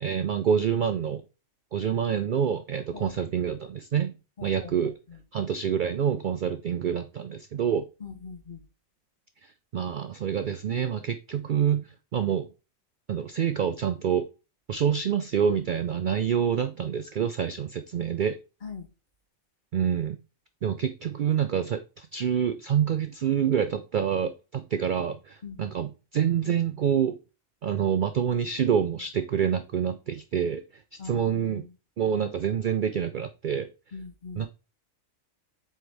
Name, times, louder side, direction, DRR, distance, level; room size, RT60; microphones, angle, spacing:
voice 1, 0.0-1.2 1.7-4.1 4.4-4.9 5.3-7.9 9.4-12.5 13.1-14.2 14.7-18.4 19.7-20.2 20.6-27.2 27.6-31.6 32.0-33.7 34.3-34.5, right 8 dB, 75° right, 0.4 m, -27 dB
voice 2, 4.4-4.7 5.1-5.2 8.0-8.6 18.6-18.9 25.4-25.6 31.0-31.7 33.9-34.5, left 4 dB, 40° left, 1.1 m, -41 dB
7.9 x 4.5 x 3.3 m
omnidirectional pair, 1.4 m